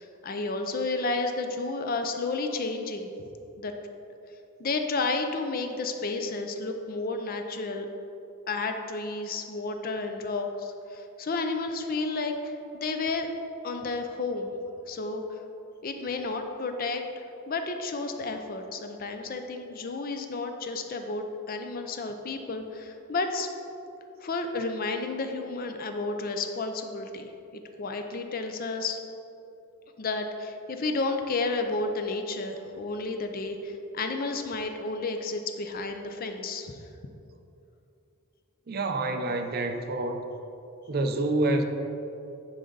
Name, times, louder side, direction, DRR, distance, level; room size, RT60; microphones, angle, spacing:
voice 1, 0.0-3.1 3.6-3.7 4.6-7.9 8.5-13.3 13.6-14.5 14.9-15.2 15.8-17.0 17.5-23.5 24.2-29.0 30.0-36.8, left 3 dB, 45° left, 6 dB, 0.5 m, -31 dB
voice 2, 38.7-40.2 40.9-41.6, right 2 dB, 45° right, 5 dB, 0.5 m, -27 dB
9.9 x 4.0 x 3.9 m, 2.8 s
head